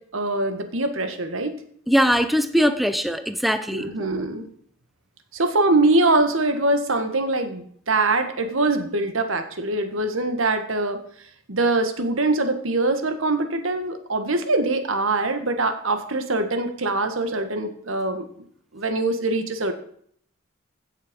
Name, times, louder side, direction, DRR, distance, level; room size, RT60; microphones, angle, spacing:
voice 1, 0.1-1.5 3.7-4.5 5.3-11.0 11.5-18.3 18.7-19.7, right 2 dB, 90° right, 8 dB, 1.6 m, -23 dB
voice 2, 1.9-3.9, equal, ahead, 9 dB, 0.6 m, -21 dB
16.0 x 6.6 x 5.3 m, 0.63 s
head